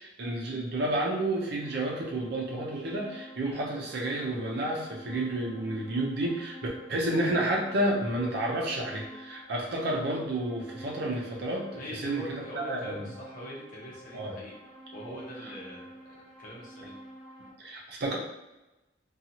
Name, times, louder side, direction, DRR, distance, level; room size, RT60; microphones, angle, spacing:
voice 1, 0.0-6.6 6.9-13.1 14.1-14.3 15.1-15.2 17.6-18.2, right 1 dB, 65° right, -2 dB, 0.6 m, -30 dB
sound 1, 1.2-17.5, equal, 10° right, 1.3 m, -49 dB
voice 2, 3.4-3.8 11.8-14.6 14.9-17.0, left 1 dB, 50° left, -5 dB, 0.8 m, -43 dB
2.7 x 2.3 x 2.7 m, 1.0 s
head